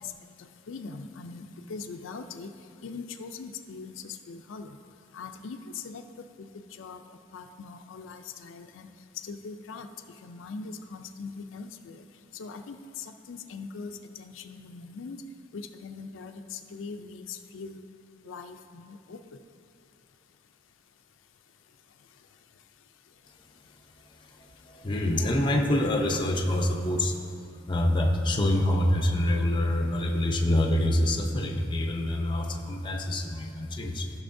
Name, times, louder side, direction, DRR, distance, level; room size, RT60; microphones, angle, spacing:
voice 1, 0.7-2.5 2.8-4.8 5.1-6.0 6.4-7.0 7.3-8.9 9.2-9.9 10.2-12.0 12.3-15.2 15.5-17.8 18.2-19.2, left 4 dB, 90° left, 6 dB, 0.4 m, -41 dB
voice 2, 24.3-27.2 27.7-34.1, left 1 dB, 25° left, 2 dB, 0.7 m, -26 dB
15.0 x 6.1 x 2.6 m, 2.6 s
head